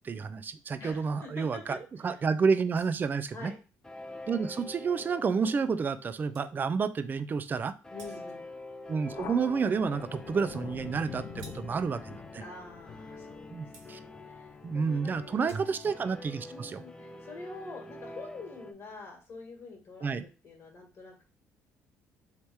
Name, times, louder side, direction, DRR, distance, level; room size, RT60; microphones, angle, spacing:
voice 1, 0.0-1.8 2.0-3.5 4.3-7.7 8.9-12.4 13.5-14.0 14.6-16.8 20.0-20.2, right 5 dB, 30° right, 12 dB, 0.4 m, -30 dB
voice 2, 0.8-2.3 3.3-3.6 7.9-8.4 12.4-15.7 16.5-21.2, left 3 dB, 45° left, 0 dB, 1.5 m, -46 dB
sound 1, 2.7-3.2 5.9-6.0 6.3-6.5 8.0-8.5 11.4-11.8 13.7-13.9 15.2-16.0, right 4 dB, 85° right, 1.1 m, -48 dB
sound 2, 3.8-7.0 7.8-18.7, left 1 dB, 10° left, 0.6 m, -46 dB
Thunder, 9.1-16.1, left 8 dB, 60° left, 0.5 m, -46 dB
3.3 x 2.8 x 4.4 m, 0.33 s
supercardioid pair, 85°, 6 cm